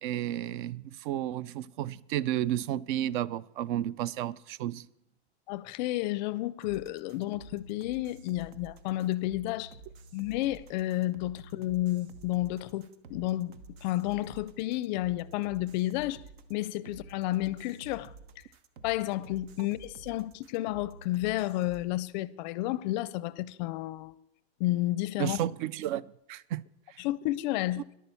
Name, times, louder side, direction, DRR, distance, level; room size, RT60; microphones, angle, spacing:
voice 1, 0.0-4.9 25.2-26.6 26.9-27.0, right 12 dB, 50° right, 0.4 m, -32 dB
voice 2, 5.5-9.7 10.1-13.6 13.8-16.2 16.5-18.1 18.8-24.2 24.6-25.4 27.0-27.8, left 16 dB, 45° left, 0.5 m, -31 dB
sound 1, 6.6-21.8, right 3 dB, 75° right, 1.1 m, -50 dB
11.5 x 8.9 x 6.9 m
supercardioid pair, 160°, 32 cm